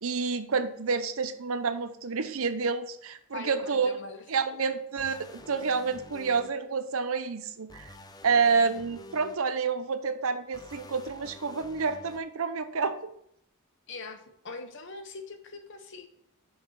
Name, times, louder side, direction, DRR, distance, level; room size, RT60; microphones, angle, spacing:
voice 1, 0.0-4.0 4.3-7.9 8.2-13.1, right 5 dB, 65° right, 10 dB, 0.7 m, -29 dB
voice 2, 3.3-4.3 4.7-4.8 13.9-16.1, left 3 dB, 55° left, 7 dB, 0.9 m, -42 dB
sound 1, 5.0-6.5 7.7-9.3 10.5-12.2, left 1 dB, 15° left, 0.5 m, -48 dB
5.7 x 5.3 x 5.7 m, 0.71 s
head